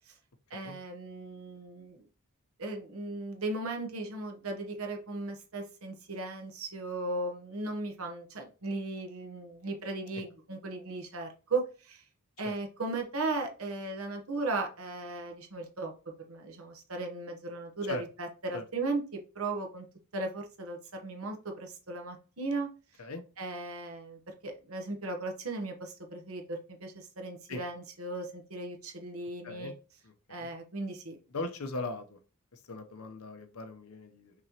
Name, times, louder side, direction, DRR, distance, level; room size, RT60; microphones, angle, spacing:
voice 1, 0.5-2.1 2.6-12.0 12.4-15.9 16.3-19.9 20.1-22.7 23.4-29.7 30.3-31.2, right 2 dB, 75° right, 3 dB, 1.1 m, -37 dB
voice 2, 30.0-30.5 31.3-32.2 32.5-34.4, left 2 dB, 85° left, 7 dB, 0.8 m, -39 dB
5.8 x 3.0 x 2.9 m, 0.35 s
head